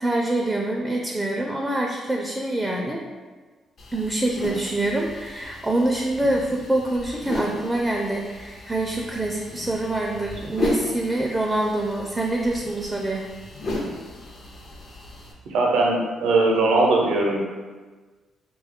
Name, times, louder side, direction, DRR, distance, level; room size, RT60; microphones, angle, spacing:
voice 1, 0.0-3.0 3.9-13.2, right 1 dB, 10° right, 0 dB, 0.4 m, -25 dB
sound 1, 3.8-15.3, left 1 dB, 55° left, 0.6 m, -35 dB
voice 2, 15.5-17.4, right 2 dB, 85° right, -1 dB, 0.6 m, -20 dB
3.3 x 2.3 x 3.5 m, 1.4 s
cardioid pair, 90°, 0 cm